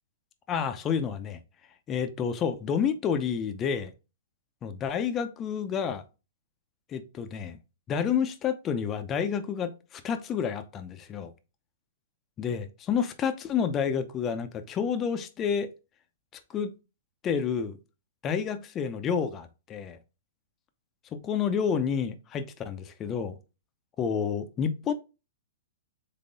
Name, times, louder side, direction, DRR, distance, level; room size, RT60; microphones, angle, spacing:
voice 1, 0.5-1.4 1.9-3.9 4.6-6.0 6.9-7.6 7.9-11.3 12.4-15.7 16.5-16.7 17.2-17.8 18.2-20.0 21.1-23.4 24.0-24.9, left 7 dB, 25° left, 0.6 m, -29 dB
3.7 x 3.7 x 3.9 m
hypercardioid pair, 125°, 0 cm